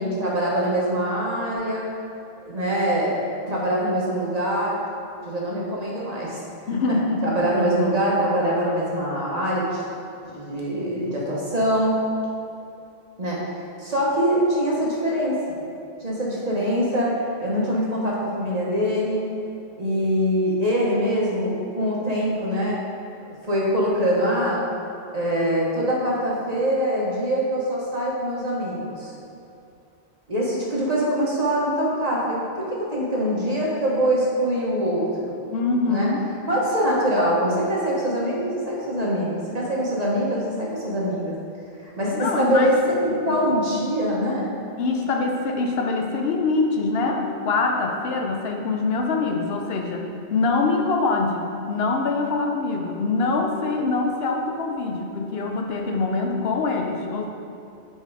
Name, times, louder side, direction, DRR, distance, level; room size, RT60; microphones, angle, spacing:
voice 1, 0.0-1.9 2.4-4.8 5.2-6.4 6.9-7.0 7.2-9.8 10.3-12.0 13.2-13.4 13.8-15.4 16.0-19.3 19.8-22.8 23.4-24.6 25.1-29.1 30.3-35.4 35.9-36.1 36.5-41.3 41.8-44.5, equal, 40° right, -5 dB, 1.1 m, -23 dB
voice 2, 6.7-7.3 35.5-36.3 42.1-42.9 43.5-43.6 44.8-57.3, left 3 dB, 70° left, 2 dB, 0.8 m, -24 dB
5.2 x 4.3 x 4.7 m, 2.6 s
omnidirectional pair, 1.1 m